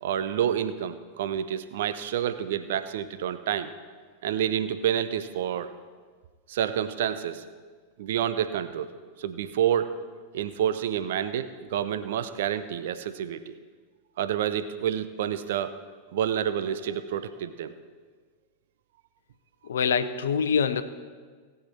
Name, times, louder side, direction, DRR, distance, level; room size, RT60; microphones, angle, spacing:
voice 1, 0.0-3.7 4.2-5.7 6.5-7.4 8.0-8.9 9.2-10.0 10.3-13.5 14.2-15.7 16.1-17.7, right 9 dB, 55° right, 11 dB, 0.7 m, -28 dB
voice 2, 19.7-20.8, left 6 dB, 65° left, 10 dB, 0.7 m, -24 dB
18.0 x 8.0 x 4.3 m, 1.5 s
figure-of-eight pair, 90°, 0 cm